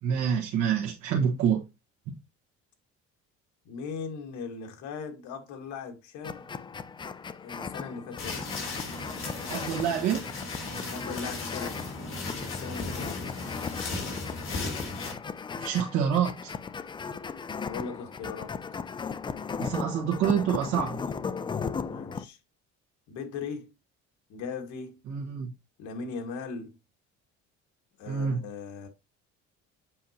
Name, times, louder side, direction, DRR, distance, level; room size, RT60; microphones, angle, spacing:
voice 1, 0.0-1.6 9.5-10.3 15.6-16.5 19.6-21.0 25.1-25.5 28.0-28.4, right 8 dB, 70° right, 1.5 m, -27 dB
voice 2, 3.6-6.4 7.4-8.4 10.9-11.8 12.5-13.3 17.6-18.6 21.8-22.4 23.1-23.7 24.3-25.0 25.8-26.8 28.0-28.9, left 5 dB, 80° left, 1.8 m, -39 dB
sound 1, 6.2-22.2, left 5 dB, 15° left, 0.3 m, -37 dB
sound 2, 8.2-15.1, left 3 dB, 45° left, 3.3 m, -36 dB
7.4 x 5.7 x 2.9 m
cardioid pair, 140°, 29 cm